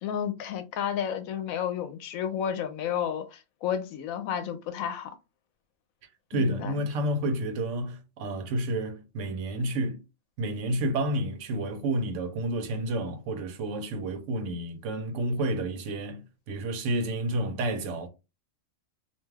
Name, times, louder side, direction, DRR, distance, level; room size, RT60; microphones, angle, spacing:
voice 1, 0.0-5.1 6.3-6.8, left 9 dB, 90° left, 1.0 m, -31 dB
voice 2, 6.3-10.0 10.4-18.1, right 1 dB, 70° right, 0.9 m, -30 dB
2.5 x 2.3 x 3.2 m
omnidirectional pair, 1.4 m